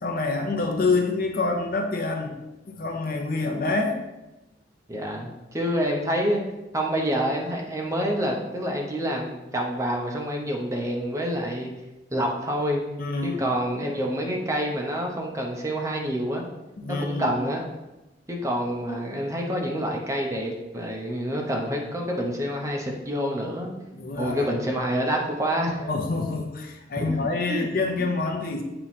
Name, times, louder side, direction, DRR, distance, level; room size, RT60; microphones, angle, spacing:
voice 1, 0.0-2.4 2.7-4.0 13.0-13.4 16.8-17.4 23.9-24.5 25.8-28.6, left 3 dB, 50° left, 2 dB, 0.7 m, -27 dB
voice 2, 4.9-6.4 6.7-11.7 12.1-12.8 13.2-16.5 16.9-17.6 18.3-23.7 24.2-25.8 27.0-27.2 27.5-27.7, equal, 15° right, 0 dB, 0.7 m, -27 dB
7.6 x 3.0 x 4.2 m, 1.0 s
head